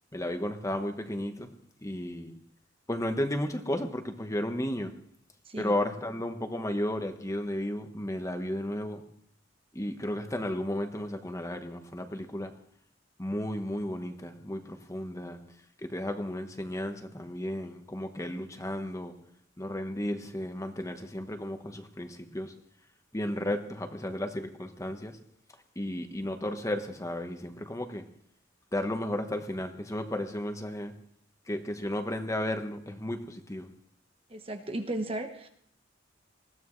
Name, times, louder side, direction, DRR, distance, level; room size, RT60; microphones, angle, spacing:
voice 1, 0.1-1.5 1.8-2.3 2.9-4.9 5.6-9.0 9.7-12.5 13.2-15.4 15.8-19.1 19.6-22.5 23.1-25.2 25.7-28.0 28.7-30.9 31.5-33.7, left 1 dB, 15° left, 6 dB, 1.2 m, -33 dB
voice 2, 34.3-35.5, right 1 dB, 30° right, 6 dB, 1.0 m, -35 dB
20.5 x 15.0 x 3.2 m, 0.65 s
head